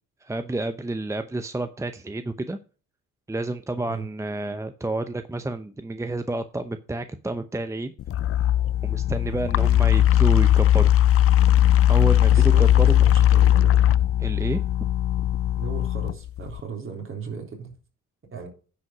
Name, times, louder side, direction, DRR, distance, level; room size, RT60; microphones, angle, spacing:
voice 1, 0.2-2.6 3.3-7.9 8.8-10.9 11.9-13.0 14.2-14.6, right 2 dB, 10° right, 0.8 m, -29 dB
sound 1, 8.0-16.6, left 12 dB, 50° left, 0.5 m, -19 dB
voice 2, 12.3-13.8 15.5-17.7 18.3-18.5, right 6 dB, 45° right, 3.7 m, -36 dB
10.0 x 5.2 x 6.0 m
cardioid pair, 90°, 30 cm